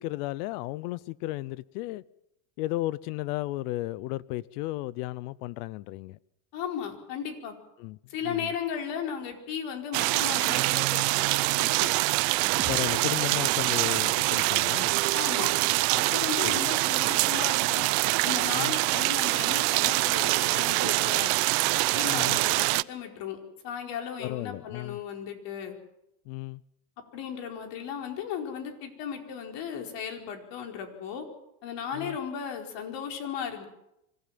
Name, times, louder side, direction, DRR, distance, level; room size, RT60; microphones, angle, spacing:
voice 1, 0.0-2.0 2.6-6.2 7.8-8.0 8.2-8.5 12.7-14.9 16.4-16.6 18.6-18.8 22.1-22.4 24.2-25.0 26.3-26.6 31.9-32.2, left 18 dB, 80° left, 0.9 m, -34 dB
voice 2, 6.5-7.5 8.1-11.1 11.5-11.9 15.1-15.5 15.9-17.9 18.2-21.3 21.9-23.4 23.6-25.7 27.1-31.3 31.6-33.7, left 8 dB, 65° left, 4.7 m, -36 dB
sound 1, 9.9-22.8, right 26 dB, 75° right, 0.7 m, -25 dB
sound 2, 12.6-16.6, right 6 dB, 30° right, 2.8 m, -47 dB
25.0 x 15.5 x 7.6 m
supercardioid pair, 100°, 46 cm